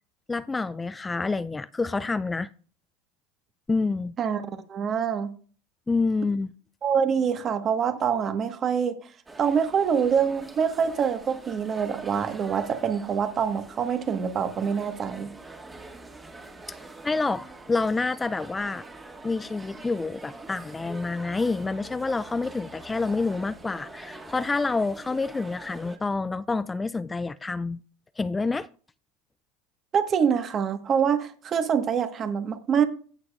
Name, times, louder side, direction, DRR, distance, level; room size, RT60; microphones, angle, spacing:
voice 1, 0.3-2.5 3.7-4.1 5.9-6.5 17.0-18.8 19.2-27.8 28.2-28.7, left 3 dB, 15° left, 0.3 m, -28 dB
voice 2, 4.7-5.3 6.8-9.0 9.4-15.3 29.9-32.8, right 7 dB, 35° right, 1.3 m, -25 dB
sound 1, 9.3-26.0, right 2 dB, 15° right, 1.7 m, -45 dB
16.0 x 6.5 x 2.4 m
hypercardioid pair, 90°, 0 cm